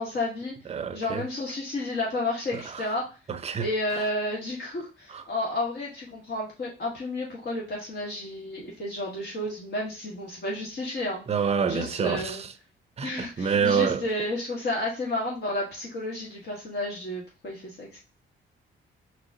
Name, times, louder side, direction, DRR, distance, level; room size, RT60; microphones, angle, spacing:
voice 1, 0.0-0.5 0.9-3.0 3.6-11.2 11.7-12.4 13.0-18.0, left 2 dB, 55° left, 1.7 m, -31 dB
voice 2, 0.7-1.2 2.5-2.8 3.3-3.7 5.1-5.2 11.3-12.5 13.0-14.0, right 6 dB, 30° right, 0.5 m, -27 dB
4.0 x 3.1 x 3.8 m
cardioid pair, 90°, 20 cm